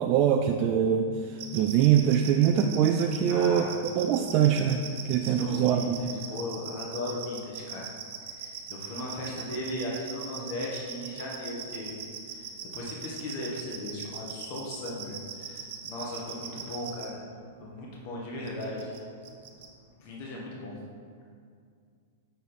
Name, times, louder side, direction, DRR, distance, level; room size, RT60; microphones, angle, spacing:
voice 1, 0.0-3.7 3.9-6.1, right 9 dB, 45° right, 3 dB, 0.4 m, -24 dB
sound 1, 1.4-17.1 18.5-19.0 19.2-19.7, right 9 dB, 65° right, 0.9 m, -39 dB
voice 2, 3.2-3.7 5.0-7.9 8.2-12.0 12.3-17.2 17.6-18.9 20.0-20.8, left 1 dB, 50° left, -3 dB, 1.5 m, -37 dB
6.6 x 4.4 x 5.1 m, 2.3 s
hypercardioid pair, 120°, 0 cm